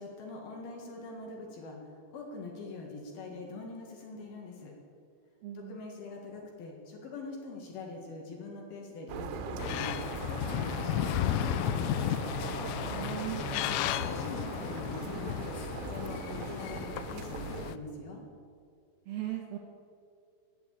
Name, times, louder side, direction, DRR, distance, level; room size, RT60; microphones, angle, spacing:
voice 1, 0.0-4.7 5.5-10.0 10.3-12.0 13.0-15.6 15.9-18.2, left 3 dB, 60° left, 0 dB, 3.2 m, -43 dB
voice 2, 5.4-5.8 12.8-13.4 19.1-19.6, right 15 dB, 70° right, 1 dB, 2.4 m, -37 dB
sound 1, 9.1-17.7, right 7 dB, 90° right, 3.5 m, -40 dB
sound 2, 9.6-17.8, left 12 dB, 85° left, 3.0 m, -34 dB
16.5 x 8.6 x 8.7 m, 2.2 s
omnidirectional pair, 5.5 m